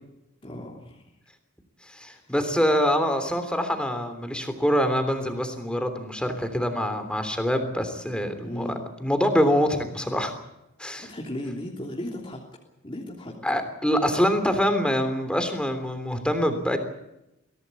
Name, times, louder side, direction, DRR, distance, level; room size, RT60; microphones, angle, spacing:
voice 1, 0.4-1.0 2.1-2.2 8.4-8.8 11.0-12.4 12.8-13.3, left 1 dB, 25° left, -2 dB, 3.1 m, -35 dB
voice 2, 1.9-8.7 9.0-10.3 10.8-11.1 13.4-16.8, equal, 5° left, 8 dB, 3.2 m, -25 dB
23.0 x 17.0 x 8.4 m, 0.87 s
head